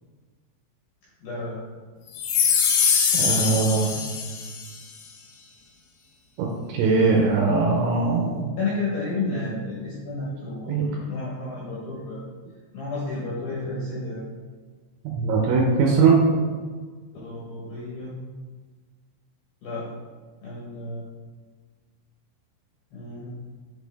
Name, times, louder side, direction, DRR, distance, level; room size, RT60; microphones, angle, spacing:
voice 1, 1.2-1.6 8.6-12.3 12.7-14.2 17.2-18.1 19.6-19.9 20.4-21.1 22.9-23.3, left 3 dB, 75° left, -7 dB, 2.3 m, -31 dB
sound 1, 2.2-4.7, left 7 dB, 90° left, 2.4 m, -22 dB
voice 2, 3.1-4.0 6.4-8.5 10.7-10.8 15.1-16.2, right 4 dB, 80° right, -1 dB, 2.8 m, -21 dB
8.0 x 4.1 x 3.4 m, 1.4 s
omnidirectional pair, 6.0 m